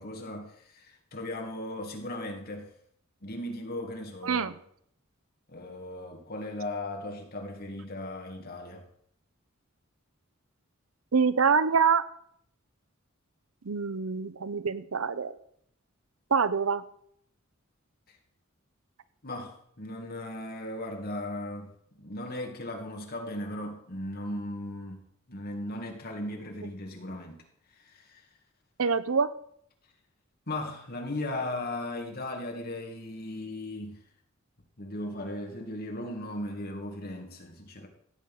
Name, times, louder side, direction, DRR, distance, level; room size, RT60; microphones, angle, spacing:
voice 1, 0.0-2.7 3.2-4.5 5.5-8.8 19.2-21.7 22.0-25.0 25.3-27.4 27.9-28.2 30.5-34.0 34.8-37.9, left 1 dB, 45° left, 3 dB, 2.1 m, -37 dB
voice 2, 11.1-12.0 13.7-15.3 16.3-16.8 28.8-29.3, right 5 dB, 80° right, 14 dB, 0.7 m, -25 dB
15.5 x 8.2 x 5.4 m, 0.67 s
head